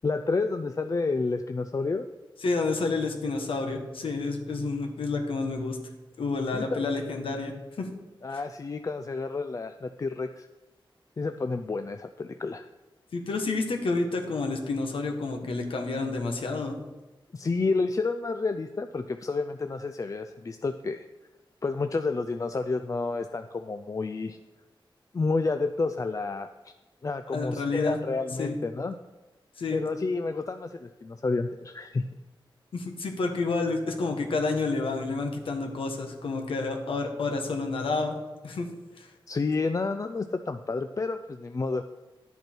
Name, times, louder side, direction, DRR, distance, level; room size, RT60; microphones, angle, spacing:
voice 1, 0.0-2.1 6.5-6.9 8.2-10.5 11.2-12.7 17.3-21.0 21.6-24.4 25.1-26.5 27.0-28.9 29.7-32.0 39.3-41.8, left 3 dB, 40° left, 8 dB, 0.4 m, -30 dB
voice 2, 2.4-5.8 6.2-7.5 7.8-7.9 8.3-8.4 13.1-16.8 27.3-28.0 28.4-28.5 29.6-29.8 32.7-38.2 38.4-38.7 39.0-39.1, left 3 dB, 85° left, 3 dB, 1.4 m, -29 dB
10.5 x 8.1 x 4.5 m, 1.1 s
wide cardioid pair, 85°, 9 cm